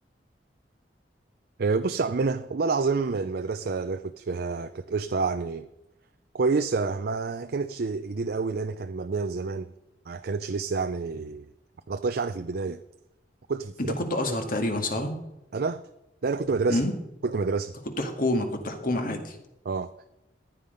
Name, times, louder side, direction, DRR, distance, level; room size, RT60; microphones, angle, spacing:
voice 1, 1.6-5.7 6.3-9.7 10.1-11.5 11.9-12.8 13.5-13.9 15.5-15.8 16.2-16.8 17.2-17.7 19.7-19.9, right 4 dB, 60° right, 0.5 m, -28 dB
voice 2, 14.0-15.2 16.7-16.9 18.0-19.4, left 1 dB, 50° left, 2.0 m, -27 dB
15.0 x 10.0 x 5.2 m
head